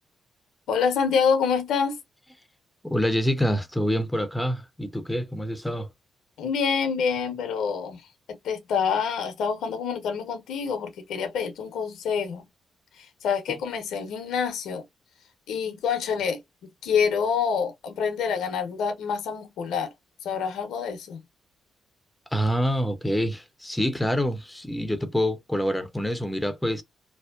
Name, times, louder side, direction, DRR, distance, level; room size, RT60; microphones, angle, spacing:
voice 1, 0.7-2.0 6.4-8.0 8.3-12.4 13.0-14.8 15.5-16.4 16.8-19.9 20.2-21.2, left 6 dB, 80° left, 0.7 m, -26 dB
voice 2, 2.8-5.9 22.3-26.8, equal, 5° left, 0.6 m, -26 dB
2.7 x 2.0 x 2.2 m
supercardioid pair, 60°, 0 cm